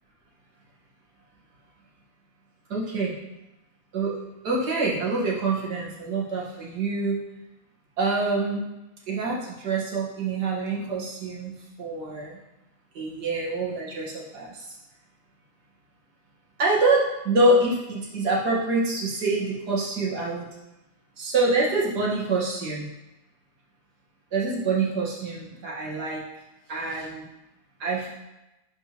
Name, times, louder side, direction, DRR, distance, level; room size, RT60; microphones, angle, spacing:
voice 1, 2.7-3.1 3.9-4.2 4.4-7.2 8.0-8.6 9.1-12.4 12.9-14.8 16.6-20.5 21.2-22.9 24.3-26.2 26.7-27.3 27.8-28.1, right 2 dB, 75° right, -4 dB, 2.1 m, -26 dB
11.0 x 4.6 x 3.0 m, 0.97 s
omnidirectional pair, 1.8 m